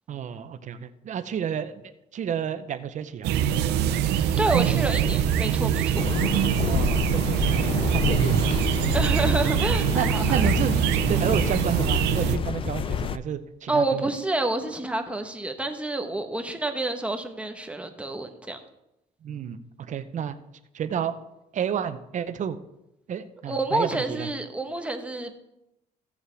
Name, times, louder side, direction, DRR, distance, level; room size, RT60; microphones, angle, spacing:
voice 1, 0.1-1.7 2.1-3.3 6.6-8.8 9.9-14.1 19.2-20.3 20.7-21.1 21.5-22.6 23.1-24.3, right 8 dB, 45° right, 11 dB, 0.7 m, -31 dB
sound 1, 3.2-12.4, right 9 dB, 85° right, 0.7 m, -24 dB
voice 2, 4.1-6.1 8.9-10.4 13.7-18.6 23.5-25.4, right 2 dB, 5° right, 4 dB, 1.1 m, -28 dB
sound 2, 5.9-13.2, left 7 dB, 30° left, 0.4 m, -29 dB
15.5 x 7.2 x 3.4 m, 0.88 s
cardioid pair, 110°, 17 cm